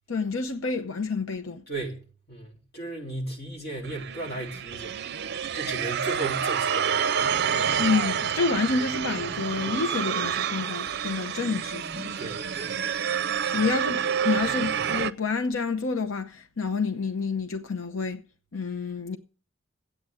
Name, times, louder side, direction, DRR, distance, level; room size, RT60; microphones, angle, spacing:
voice 1, 0.1-1.6 7.8-12.3 13.5-18.2 18.5-19.2, left 4 dB, 85° left, 0.8 m, -28 dB
voice 2, 1.7-2.0 2.3-5.0 5.5-7.1 12.2-12.8 13.4-13.6, right 2 dB, 50° left, 3.6 m, -35 dB
sound 1, 3.8-15.1, right 8 dB, 55° right, 0.5 m, -28 dB
9.7 x 8.7 x 7.8 m
head